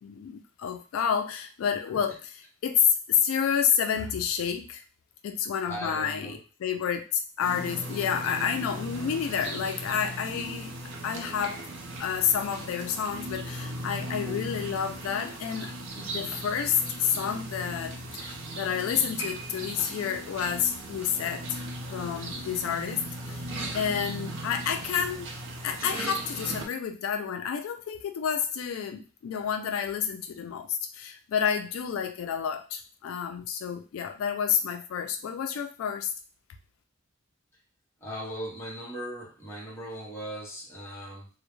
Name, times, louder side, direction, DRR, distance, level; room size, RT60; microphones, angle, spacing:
voice 1, 0.0-4.8 5.2-10.7 11.0-11.7 12.0-21.6 21.9-23.0 23.3-23.5 23.7-25.3 25.6-36.1, left 7 dB, 80° left, 7 dB, 0.3 m, -29 dB
voice 2, 5.7-6.4 38.0-41.3, equal, 10° left, -4 dB, 0.7 m, -38 dB
sound 1, 7.4-26.7, right 1 dB, 65° right, 0.5 m, -38 dB
sound 2, 19.2-22.5 22.8-23.0 23.7-23.8, right 4 dB, 25° right, 1.0 m, -46 dB
2.2 x 2.0 x 3.0 m, 0.34 s
head